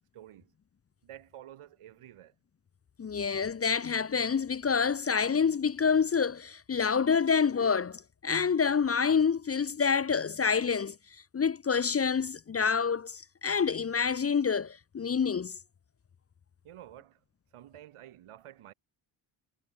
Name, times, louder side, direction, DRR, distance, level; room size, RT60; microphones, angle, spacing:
voice 1, 0.1-0.5 1.0-2.3 16.6-17.2 17.5-18.7, right 12 dB, 85° right, 4.7 m, -50 dB
voice 2, 3.0-11.0 11.3-15.6, left 6 dB, 30° left, 0.6 m, -27 dB
cardioid pair, 60°, 50 cm